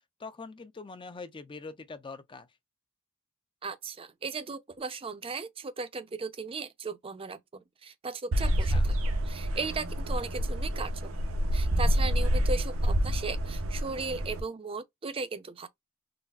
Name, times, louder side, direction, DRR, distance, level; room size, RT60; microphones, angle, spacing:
voice 1, 0.2-2.5 8.4-8.8, left 4 dB, 25° left, 0.4 m, -43 dB
voice 2, 3.6-8.9 9.3-10.9 11.5-15.7, right 4 dB, 25° right, 0.5 m, -37 dB
sound 1, 8.3-14.4, equal, 70° right, 0.6 m, -28 dB
4.0 x 2.0 x 2.3 m
head